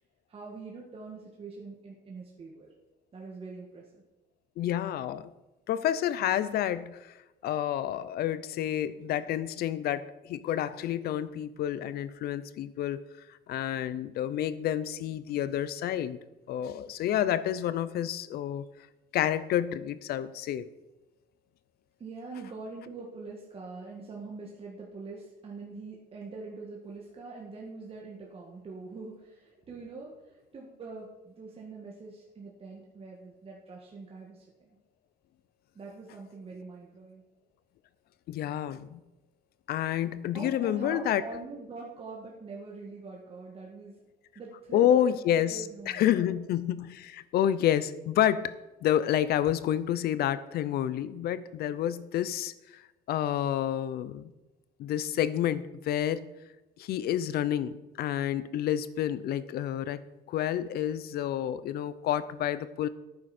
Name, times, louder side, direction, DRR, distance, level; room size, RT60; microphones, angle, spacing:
voice 1, 0.3-2.7 3.1-4.0 22.0-34.8 35.8-37.2 40.3-43.9 44.4-46.4, right 3 dB, 35° right, -3 dB, 1.8 m, -43 dB
voice 2, 4.6-5.3 5.7-7.1 7.4-13.0 13.5-16.2 16.5-18.6 19.1-20.7 38.3-39.0 39.7-41.2 44.7-48.6 48.8-52.5 53.1-54.3 54.8-56.2 56.8-60.0 60.3-62.9, left 11 dB, 70° left, 16 dB, 0.6 m, -29 dB
11.5 x 9.5 x 4.3 m, 1.0 s
cardioid pair, 110°, 17 cm